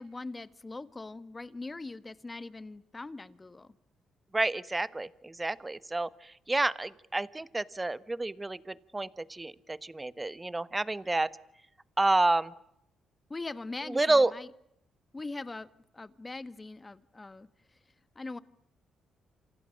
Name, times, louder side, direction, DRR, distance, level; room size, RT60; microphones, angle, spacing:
voice 1, 0.0-3.7 13.3-14.5 15.1-17.8 18.1-18.4, left 3 dB, 20° left, 12 dB, 1.5 m, -41 dB
voice 2, 4.3-11.3 12.0-12.5 13.9-14.3, right 2 dB, 15° right, 14 dB, 1.2 m, -29 dB
28.0 x 28.0 x 6.5 m, 0.77 s
cardioid pair, 90°, 0 cm